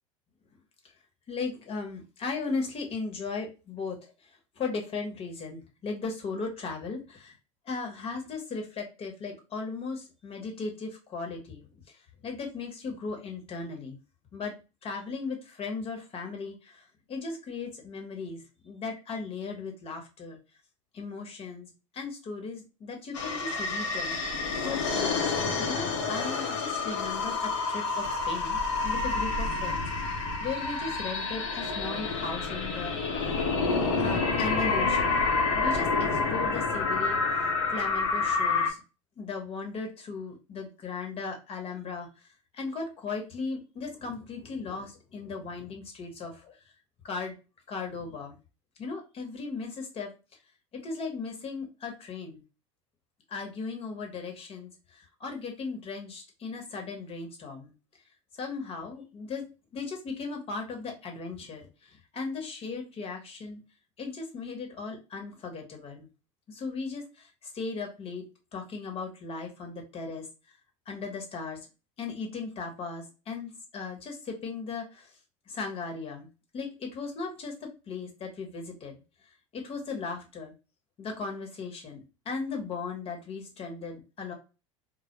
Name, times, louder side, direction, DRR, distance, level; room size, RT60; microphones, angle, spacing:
voice 1, 1.3-7.4 7.6-14.0 14.3-14.5 14.8-20.4 20.9-25.3 25.6-29.8 30.4-33.4 34.0-35.3 35.5-38.8 39.2-46.6 47.0-47.4 47.7-48.4 48.8-50.1 50.7-52.4 53.3-57.7 58.3-59.4 59.7-63.6 64.0-66.1 66.5-68.2 68.5-70.3 70.9-71.6 72.0-75.1 75.5-76.3 76.5-78.9 79.5-80.5 81.0-84.3, left 4 dB, 40° left, 2 dB, 0.9 m, -37 dB
sound 1, 23.1-38.7, left 4 dB, 75° left, 0.7 m, -28 dB
2.1 x 2.0 x 2.9 m, 0.30 s
hypercardioid pair, 90°, 16 cm